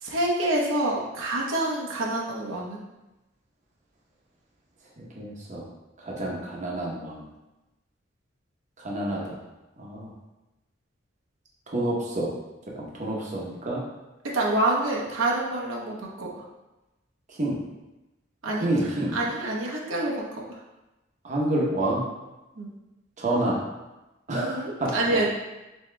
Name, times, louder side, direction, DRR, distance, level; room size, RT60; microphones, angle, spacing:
voice 1, 0.0-2.8 14.2-16.4 18.4-20.6 22.6-22.7 24.3-25.3, right 1 dB, 90° right, -3 dB, 0.8 m, -27 dB
voice 2, 5.0-5.7 6.0-7.3 8.8-9.4 9.8-10.1 11.7-12.3 12.8-13.8 17.4-17.6 18.6-19.2 21.2-22.0 23.2-23.6 24.3-24.9, right 1 dB, 40° right, -4 dB, 0.8 m, -28 dB
7.1 x 2.7 x 2.2 m, 1.0 s
head